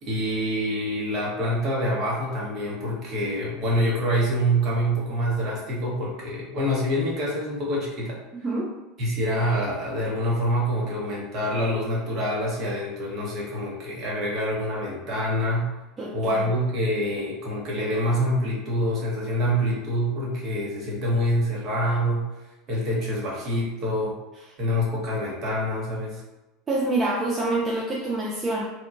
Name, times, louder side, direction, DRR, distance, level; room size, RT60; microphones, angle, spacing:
voice 1, 0.0-8.2 9.0-15.7 16.1-22.3 22.7-24.1 24.6-26.2, equal, 50° right, -4 dB, 1.1 m, -26 dB
voice 2, 16.0-16.4 26.7-28.6, right 2 dB, 25° right, -5 dB, 0.5 m, -26 dB
2.8 x 2.2 x 2.5 m, 1.1 s
hypercardioid pair, 95°, 0 cm